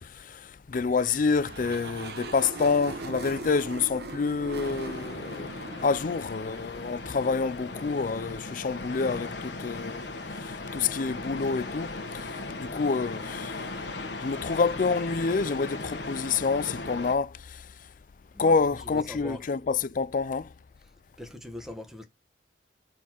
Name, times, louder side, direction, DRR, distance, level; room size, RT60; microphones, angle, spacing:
voice 1, 0.7-5.5 5.8-10.1 10.3-12.3 12.6-13.7 14.2-17.3 18.4-20.5, left 4 dB, 45° left, 0.4 m, -27 dB
sound 1, 0.9-7.3, right 3 dB, 65° right, 1.3 m, -40 dB
sound 2, 4.6-17.2, left 2 dB, 75° left, 1.4 m, -37 dB
voice 2, 18.3-19.5 20.8-20.9 21.2-22.0, left 1 dB, 5° right, 1.2 m, -42 dB
5.8 x 4.3 x 4.5 m
head